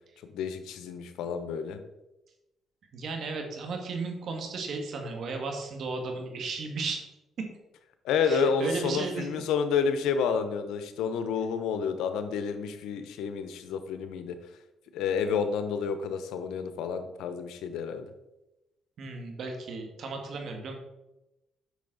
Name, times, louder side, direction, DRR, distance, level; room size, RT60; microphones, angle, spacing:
voice 1, 0.2-1.8 8.0-14.3 14.9-18.1, left 6 dB, 90° left, 9 dB, 0.9 m, -29 dB
voice 2, 2.9-7.1 7.4-7.5 8.2-9.3 19.0-20.8, right 4 dB, 65° right, 3 dB, 1.9 m, -35 dB
8.3 x 6.4 x 4.0 m, 0.96 s
cardioid pair, 90°, 0 cm